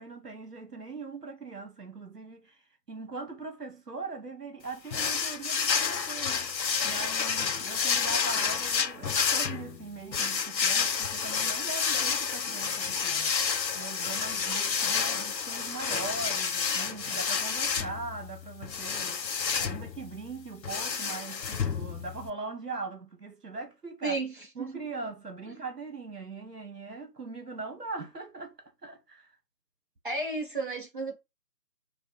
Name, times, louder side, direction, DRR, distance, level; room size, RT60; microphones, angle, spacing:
voice 1, 0.0-2.6 2.9-13.3 13.7-19.2 19.6-24.2 24.5-28.5 28.8-29.3, right 3 dB, 65° right, 1.5 m, -40 dB
sound 1, 4.9-22.3, left 6 dB, 90° left, 0.7 m, -30 dB
voice 2, 24.0-24.7 25.4-25.6 30.0-31.2, right 3 dB, 30° right, 1.1 m, -33 dB
4.9 x 2.5 x 4.0 m
figure-of-eight pair, 165°, 49 cm